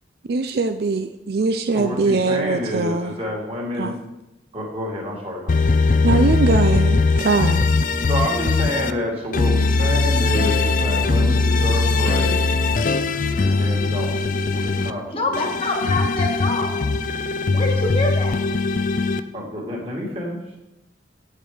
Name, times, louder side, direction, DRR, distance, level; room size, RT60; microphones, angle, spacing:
voice 1, 0.3-3.1 3.8-4.0 6.0-7.7, right 3 dB, 55° right, 9 dB, 0.4 m, -21 dB
voice 2, 1.7-4.0 4.5-5.6 6.0-6.2 8.1-12.6 13.4-14.2 14.5-15.5 19.3-20.4, left 1 dB, 30° right, -2 dB, 2.4 m, -28 dB
sound 1, 5.5-8.9 9.3-14.9 15.3-19.2, left 3 dB, 45° left, 0.4 m, -20 dB
voice 3, 15.1-16.8 17.5-18.4, left 2 dB, 30° left, 2 dB, 1.5 m, -25 dB
8.8 x 8.1 x 4.9 m, 0.94 s
head